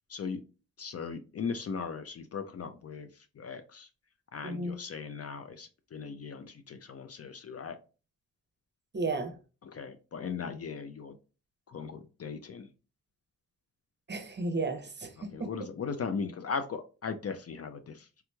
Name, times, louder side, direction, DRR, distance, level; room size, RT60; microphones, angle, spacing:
voice 1, 0.1-0.4 0.8-3.1 3.4-3.9 4.3-7.8 9.6-11.1 11.7-12.7 15.3-18.1, left 5 dB, 45° left, 8 dB, 0.4 m, -38 dB
voice 2, 4.4-4.8 8.9-9.3 14.1-15.5, right 2 dB, 30° right, 6 dB, 0.7 m, -33 dB
3.5 x 2.9 x 2.2 m, 0.34 s
cardioid pair, 55°, 35 cm